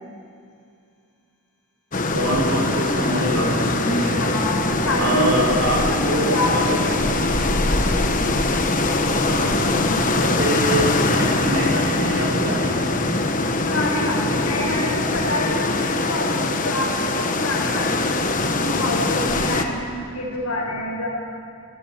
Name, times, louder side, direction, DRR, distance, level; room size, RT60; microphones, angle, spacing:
sound 1, 1.9-19.6, left 2 dB, 35° left, 1.2 m, -22 dB
voice 1, 2.1-4.3 5.0-7.0 9.1-12.9, right 1 dB, 60° right, -3 dB, 5.0 m, -25 dB
sound 2, 3.4-10.1, right 1 dB, 90° right, 2.7 m, -37 dB
voice 2, 4.2-5.3 5.9-6.8 13.6-18.3 18.6-21.1, left 2 dB, 85° left, -3 dB, 7.5 m, -27 dB
19.5 x 19.0 x 7.4 m, 2.4 s
head